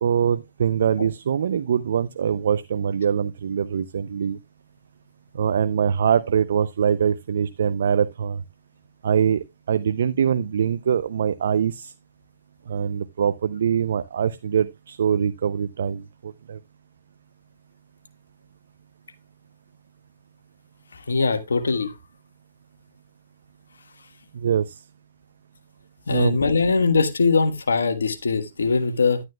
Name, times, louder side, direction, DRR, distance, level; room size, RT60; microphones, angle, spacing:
voice 1, 0.0-4.4 5.3-8.4 9.0-11.9 12.7-16.6 24.3-24.8 26.1-26.4, right 8 dB, 70° right, 0.5 m, -23 dB
voice 2, 20.9-21.9 26.1-29.2, left 4 dB, 85° left, 1.4 m, -21 dB
11.0 x 9.6 x 2.3 m
hypercardioid pair, 135°, 0 cm